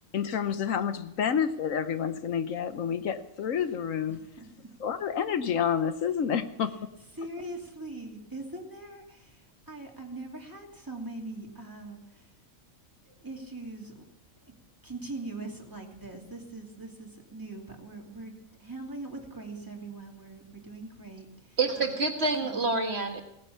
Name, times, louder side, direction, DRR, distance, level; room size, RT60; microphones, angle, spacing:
voice 1, 0.1-4.2 4.8-6.7, left 8 dB, 80° left, 10 dB, 1.3 m, -29 dB
voice 2, 4.1-4.7 7.1-12.3 13.1-14.1 14.4-14.5 14.8-18.3 18.6-21.6 22.4-22.7, right 2 dB, 15° right, 0 dB, 2.6 m, -42 dB
voice 3, 21.6-23.2, right 3 dB, 50° right, 4 dB, 1.8 m, -27 dB
17.5 x 9.9 x 7.1 m, 0.80 s
omnidirectional pair, 1.4 m